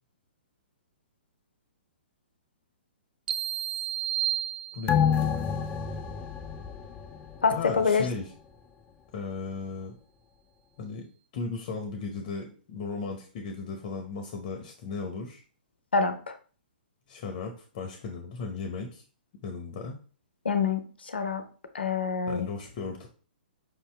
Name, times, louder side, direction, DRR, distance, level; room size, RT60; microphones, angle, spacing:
sound 1, 3.3-5.2, right 11 dB, 60° right, 0.4 m, -31 dB
voice 1, 4.7-5.3 7.5-8.3 9.1-9.9 10.8-11.1 11.3-15.4 17.1-19.0 19.4-20.0 22.3-23.1, left 4 dB, 45° left, 4 dB, 0.8 m, -36 dB
sound 2, 4.9-7.8 8.1-8.2, left 7 dB, 20° left, 0.4 m, -28 dB
voice 2, 7.4-8.0 15.9-16.1 20.4-21.4 21.7-22.5, left 5 dB, 85° left, 9 dB, 0.6 m, -26 dB
5.1 x 2.8 x 3.3 m, 0.39 s
hypercardioid pair, 125°, 5 cm